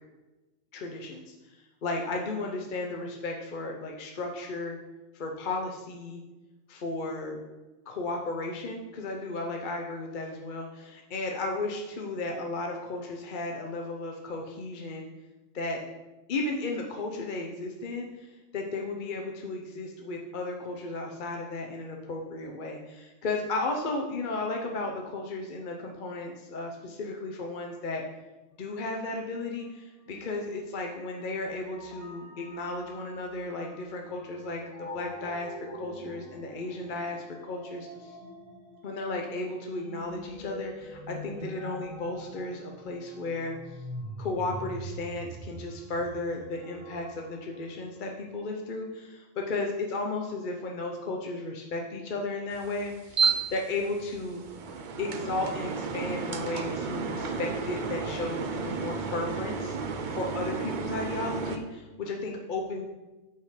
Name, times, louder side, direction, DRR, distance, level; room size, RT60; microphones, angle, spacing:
voice 1, 0.7-4.8 5.1-6.2 6.7-7.4 7.9-15.1 15.5-15.8 16.3-28.0 28.6-38.2 38.8-43.6 44.2-54.4 55.0-59.8 60.1-62.8, left 2 dB, 45° left, 1 dB, 0.7 m, -34 dB
sound 1, 29.6-29.7 30.1-48.4, equal, 85° left, 2.0 m, -45 dB
sound 2, 52.5-61.6, right 5 dB, 50° right, 0.6 m, -32 dB
6.1 x 5.6 x 5.0 m, 1.1 s
omnidirectional pair, 1.4 m